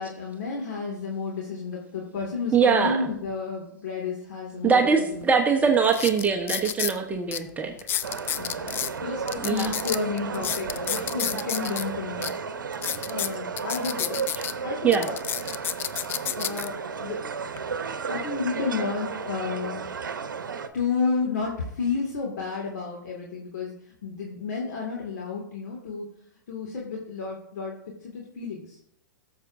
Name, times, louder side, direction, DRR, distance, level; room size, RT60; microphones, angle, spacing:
voice 1, 0.0-4.8 8.4-12.3 12.9-14.2 14.6-15.2 16.4-17.2 18.1-19.9 20.7-23.7 24.0-26.1 26.5-27.8 28.0-28.8, left 4 dB, 60° left, -2 dB, 2.0 m, -31 dB
voice 2, 2.5-3.1 4.6-7.7 9.4-9.7 14.4-14.5 14.8-15.1, right 5 dB, 15° right, 2 dB, 0.8 m, -22 dB
sound 1, 5.2-5.3 5.8-7.0 7.3-7.4 7.8-8.9 9.3-11.8 12.2-12.3 12.7-14.5 14.9-16.7 17.3-17.6, left 10 dB, 20° left, 0.4 m, -30 dB
sound 2, 8.0-20.7, right 5 dB, 80° right, 0.8 m, -33 dB
16.5 x 7.1 x 2.6 m, 0.73 s
hypercardioid pair, 115°, 10 cm